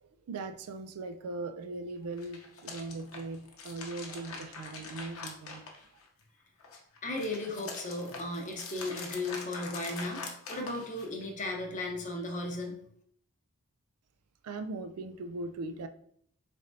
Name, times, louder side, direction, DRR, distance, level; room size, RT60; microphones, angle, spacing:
voice 1, 0.0-5.6 14.4-15.9, right 3 dB, 85° right, 9 dB, 0.4 m, -39 dB
sound 1, 2.1-6.2 6.6-11.2, left 4 dB, 70° left, 0.8 m, -44 dB
voice 2, 7.0-12.8, left 2 dB, 35° left, 1 dB, 0.7 m, -36 dB
4.1 x 3.4 x 2.6 m, 0.65 s
head